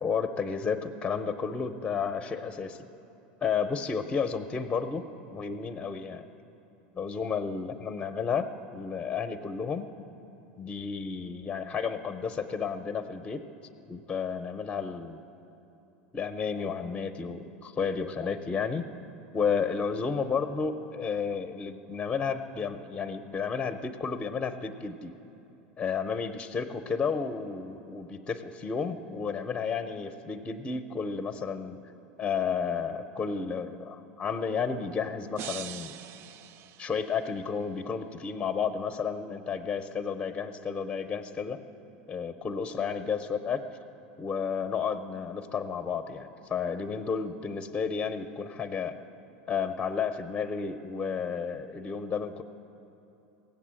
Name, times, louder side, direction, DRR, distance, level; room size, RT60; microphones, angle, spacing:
voice 1, 0.0-2.8 3.4-5.1 5.3-6.3 6.9-9.9 10.6-13.4 13.9-15.2 16.1-18.8 19.3-25.1 25.8-31.8 32.2-36.0 36.8-41.6 42.1-43.6 44.2-49.0 49.5-52.4, left 6 dB, 20° left, 9 dB, 0.6 m, -32 dB
sound 1, 35.4-37.5, right 10 dB, 50° right, 0.4 m, -43 dB
17.0 x 7.9 x 7.6 m, 2.9 s
supercardioid pair, 115°, 5 cm